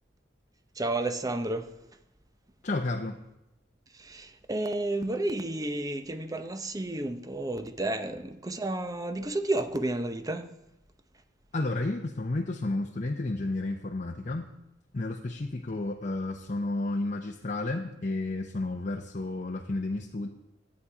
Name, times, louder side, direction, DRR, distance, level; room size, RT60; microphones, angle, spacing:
voice 1, 0.8-1.7 3.9-10.5, right 2 dB, 20° right, 0.7 m, -31 dB
voice 2, 2.6-3.2 11.5-14.5 14.9-20.3, left 2 dB, 40° left, 0.7 m, -31 dB
11.5 x 8.5 x 4.8 m
head